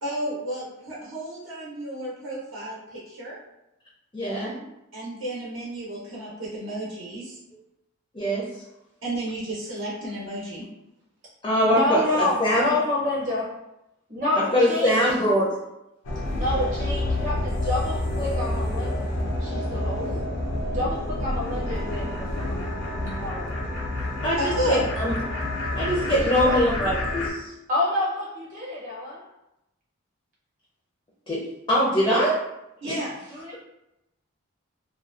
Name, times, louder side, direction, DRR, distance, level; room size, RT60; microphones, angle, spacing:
voice 1, 0.0-3.4 4.9-7.4 9.0-10.7 24.4-24.9 32.8-33.1, right 1 dB, 75° right, -6 dB, 0.6 m, -32 dB
voice 2, 4.1-4.6 8.1-8.5 11.4-12.7 14.5-15.6 24.2-25.1 25.8-27.4 31.3-32.4 32.8-33.0, equal, 25° left, -5 dB, 0.4 m, -23 dB
voice 3, 11.6-13.6 14.1-15.1 16.3-20.1 20.7-22.6 23.2-23.5 26.1-26.6 27.7-29.3 32.8-33.6, left 2 dB, 40° right, -5 dB, 0.7 m, -28 dB
sound 1, 16.0-27.3, left 1 dB, 85° left, 0.5 m, -28 dB
2.5 x 2.2 x 2.3 m, 0.88 s
head